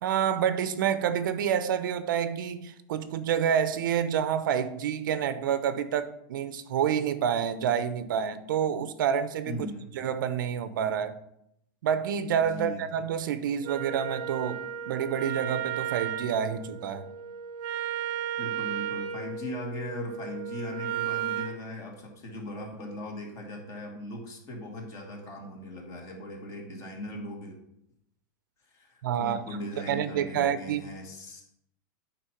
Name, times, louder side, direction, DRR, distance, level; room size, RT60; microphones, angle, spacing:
voice 1, 0.0-9.7 9.9-11.2 11.8-17.1 29.0-29.4 29.9-30.8, right 8 dB, 80° right, 12 dB, 0.8 m, -28 dB
voice 2, 9.4-9.9 12.4-12.8 18.4-27.6 28.7-31.4, left 1 dB, 30° left, 1 dB, 2.2 m, -39 dB
Wind instrument woodwind instrument, 13.6-21.6, right 10 dB, 45° right, 0.7 m, -34 dB
9.1 x 4.4 x 5.8 m, 0.78 s
supercardioid pair, 160°, 11 cm